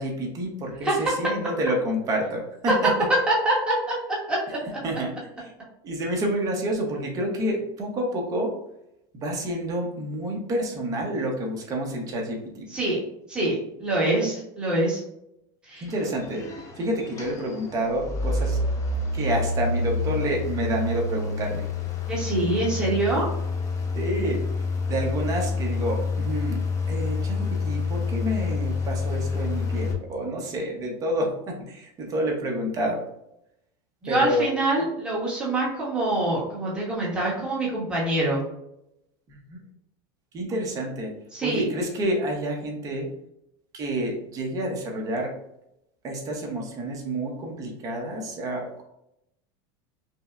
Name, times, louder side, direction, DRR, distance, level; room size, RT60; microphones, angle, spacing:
voice 1, 0.0-2.9 4.8-5.1 5.4-5.5 5.8-8.6 9.1-12.7 15.8-16.5 16.8-18.6 19.1-21.6 24.0-24.4 24.9-33.0 34.1-34.6 39.3-39.6 40.3-41.1 41.4-43.1 43.7-45.3 46.0-48.8, right 1 dB, 30° right, 1 dB, 0.8 m, -29 dB
voice 2, 3.3-4.6 12.7-13.0 13.3-15.0 15.7-15.9 22.1-23.3 34.0-38.4 41.3-41.7, right 2 dB, 5° right, -6 dB, 1.1 m, -25 dB
sound 1, 15.9-29.9, left 3 dB, 25° left, 0.6 m, -28 dB
5.3 x 2.1 x 2.4 m, 0.81 s
supercardioid pair, 155°, 12 cm